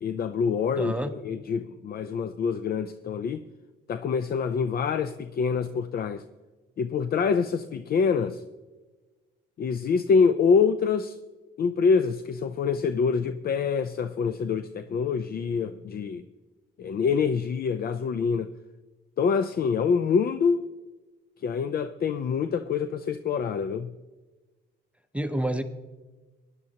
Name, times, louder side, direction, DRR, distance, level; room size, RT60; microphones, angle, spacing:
voice 1, 0.0-3.4 3.9-6.2 6.8-8.4 9.6-11.2 11.6-16.2 16.8-18.5 19.2-20.7 21.4-23.9, left 5 dB, 50° left, 0.5 m, -25 dB
voice 2, 0.8-1.1 25.1-25.6, right 1 dB, 5° right, 0.7 m, -28 dB
17.0 x 11.0 x 2.9 m
cardioid pair, 90°, 20 cm